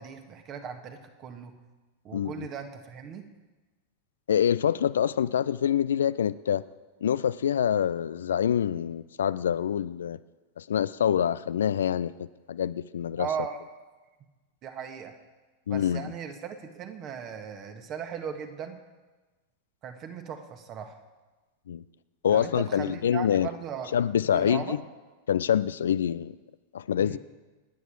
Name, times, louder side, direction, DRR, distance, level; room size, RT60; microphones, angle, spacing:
voice 1, 0.0-1.5 2.0-3.3 13.2-13.6 14.6-15.1 15.7-18.8 19.8-21.0 22.3-23.9 24.3-24.8 27.0-27.2, right 7 dB, 35° right, 6 dB, 1.8 m, -37 dB
voice 2, 2.1-2.5 4.3-6.6 7.0-10.2 10.6-13.3 15.7-16.1 21.7-21.8 22.2-23.5 23.9-24.8 25.3-26.3 26.7-27.2, left 9 dB, 65° left, 16 dB, 0.4 m, -26 dB
26.0 x 10.0 x 4.7 m, 1.2 s
figure-of-eight pair, 90°, 0 cm